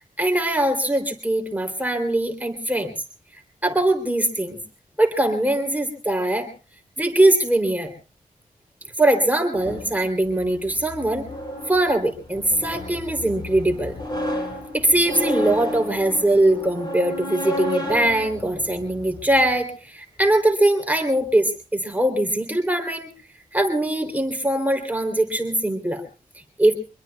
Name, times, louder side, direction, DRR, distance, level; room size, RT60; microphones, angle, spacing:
voice 1, 0.2-2.9 3.6-4.6 5.0-6.5 7.0-7.9 9.0-11.3 11.7-13.9 14.7-23.1 23.5-26.0 26.6-26.7, right 1 dB, 10° right, 4 dB, 3.1 m, -21 dB
sound 1, 9.6-19.5, equal, 30° left, 6.6 m, -32 dB
25.0 x 21.5 x 2.3 m, 0.34 s
cardioid pair, 70°, 15 cm